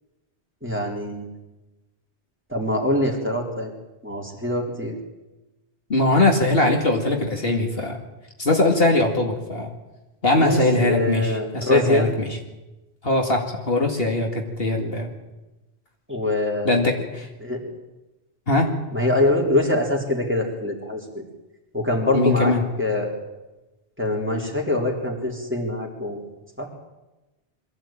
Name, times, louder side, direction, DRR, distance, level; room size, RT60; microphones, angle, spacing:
voice 1, 0.6-1.3 2.5-3.7 4.0-5.0 10.4-12.1 16.1-16.8 17.4-17.7 18.9-21.2 21.7-22.5 22.8-23.2 24.0-26.2 26.6-26.7, left 1 dB, 10° right, -1 dB, 3.8 m, -24 dB
voice 2, 5.9-8.0 8.4-9.7 10.2-12.4 13.0-15.1 16.6-17.3 18.5-18.7 22.1-22.6, left 2 dB, 60° left, 2 dB, 2.5 m, -21 dB
22.5 x 14.5 x 8.9 m, 1.1 s
omnidirectional pair, 1.1 m